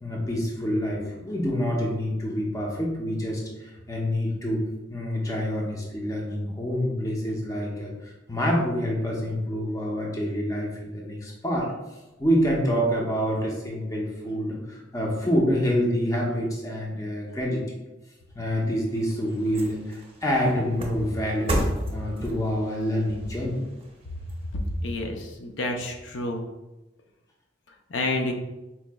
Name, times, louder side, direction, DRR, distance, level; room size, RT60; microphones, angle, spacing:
voice 1, 0.0-4.6 4.9-11.7 12.2-17.8 18.4-21.6 21.9-23.6, equal, 20° left, -2 dB, 0.6 m, -27 dB
sound 1, 18.5-25.0 25.4-25.5, equal, 30° right, 0.7 m, -34 dB
voice 2, 24.8-26.4 27.9-28.3, left 2 dB, 85° left, 3 dB, 0.5 m, -29 dB
4.5 x 3.0 x 2.2 m, 1.0 s
head